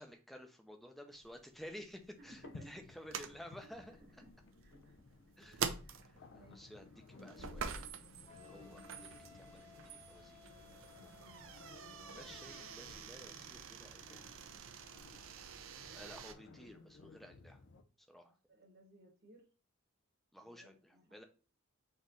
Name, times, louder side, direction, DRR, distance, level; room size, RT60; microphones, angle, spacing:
voice 1, 0.0-4.0 5.4-5.6 6.1-7.8 8.3-10.4 12.1-14.3 15.9-17.6 18.1-18.3 20.3-21.2, equal, ahead, 5 dB, 0.5 m, -54 dB
sound 1, 1.1-16.3, right 6 dB, 70° right, 0.5 m, -47 dB
sound 2, 2.2-17.8, left 3 dB, 60° left, 0.5 m, -58 dB
voice 2, 4.6-5.0 5.8-6.6 11.0-11.5 16.5-16.6 18.5-19.4 20.4-21.2, right 1 dB, 50° right, -1 dB, 1.2 m, -63 dB
Wind instrument woodwind instrument, 8.2-12.8, left 6 dB, 35° left, 1.1 m, -61 dB
4.3 x 3.1 x 3.7 m, 0.36 s
head